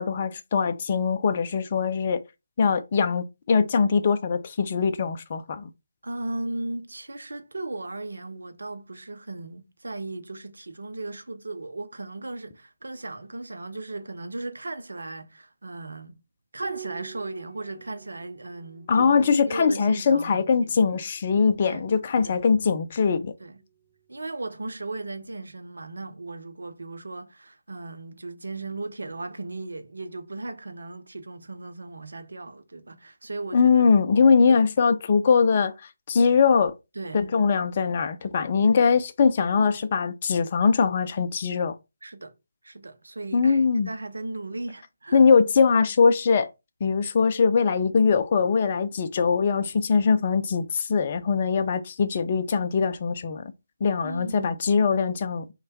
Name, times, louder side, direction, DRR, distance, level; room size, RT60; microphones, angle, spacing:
voice 1, 0.0-2.2 2.6-5.7 18.9-23.3 33.5-35.7 36.1-36.7 37.1-41.8 43.3-43.9 45.1-46.5 46.8-53.5 53.8-55.5, left 5 dB, 35° left, 0.4 m, -22 dB
voice 2, 6.0-16.2 16.5-20.9 21.7-21.8 22.2-22.5 23.4-23.6 24.1-33.8 34.5-34.6 37.0-37.3 38.6-38.8 42.0-42.3 42.6-45.2 54.0-54.6, right 2 dB, 70° right, 0.6 m, -36 dB
Piano, 16.6-21.5 23.1-23.9, right 8 dB, 50° right, 1.1 m, -46 dB
3.2 x 2.2 x 4.0 m
figure-of-eight pair, 150°, 0 cm